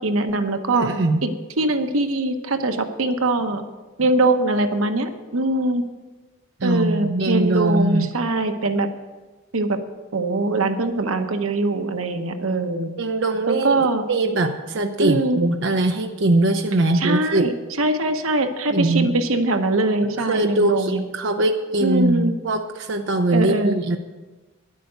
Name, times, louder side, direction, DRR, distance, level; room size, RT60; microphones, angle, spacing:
voice 1, 0.0-0.9 1.2-3.6 4.0-5.8 6.6-8.9 9.5-9.8 10.1-12.9 13.5-14.0 15.0-15.4 16.9-21.0 21.8-22.3 23.3-23.7, right 2 dB, 90° right, 7 dB, 1.0 m, -22 dB
voice 2, 0.7-1.2 6.6-8.1 13.0-17.5 18.7-19.1 20.2-24.0, right 2 dB, 60° right, 4 dB, 0.6 m, -21 dB
10.5 x 8.4 x 6.8 m, 1.2 s
head